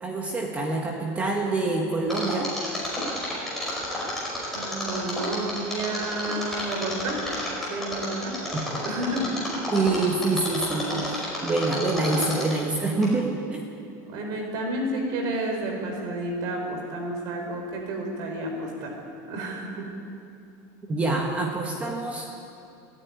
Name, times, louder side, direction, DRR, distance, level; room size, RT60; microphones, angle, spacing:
voice 1, 0.0-2.5 8.5-8.6 9.7-11.0 11.4-13.6 20.9-22.3, right 3 dB, 15° right, 0 dB, 1.6 m, -26 dB
Mechanisms, 2.1-12.7 13.0-13.1, left 1 dB, 5° left, 5.2 m, -31 dB
voice 2, 4.5-7.2 7.7-8.4 8.8-9.3 14.1-18.9 19.3-19.9, right 1 dB, 45° right, 2 dB, 4.8 m, -31 dB
29.5 x 10.0 x 9.8 m, 2.5 s
cardioid pair, 175°, 10 cm